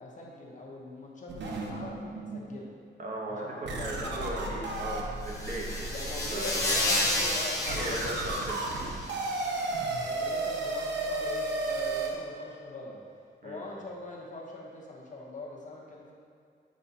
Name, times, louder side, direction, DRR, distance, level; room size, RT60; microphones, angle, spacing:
voice 1, 0.0-2.7 3.3-4.3 5.9-8.2 10.0-13.0 13.4-16.1, left 2 dB, 45° left, -3 dB, 1.0 m, -42 dB
sound 1, 1.3-2.5 3.0-3.1 3.7-12.1, right 2 dB, 80° right, 0.8 m, -34 dB
voice 2, 3.0-5.9 6.3-6.9 7.7-8.3 8.6-8.8 13.4-13.7, right 1 dB, 45° right, -2 dB, 1.0 m, -37 dB
sound 2, 5.2-9.1, left 1 dB, 20° left, 1.1 m, -31 dB
7.5 x 4.9 x 2.8 m, 2.4 s
wide cardioid pair, 150°, 18 cm